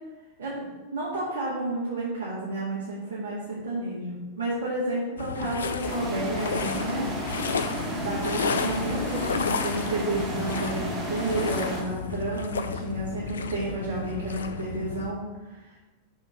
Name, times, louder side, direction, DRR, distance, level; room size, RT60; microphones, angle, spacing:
voice 1, 0.9-7.1 7.8-15.2, right 2 dB, 60° right, -9 dB, 1.9 m, -31 dB
sound 1, 5.2-15.1, left 5 dB, 70° left, 0.4 m, -32 dB
sound 2, 5.8-11.8, equal, 15° right, 1.5 m, -33 dB
5.7 x 4.3 x 5.2 m, 1.1 s
figure-of-eight pair, 90°, 0 cm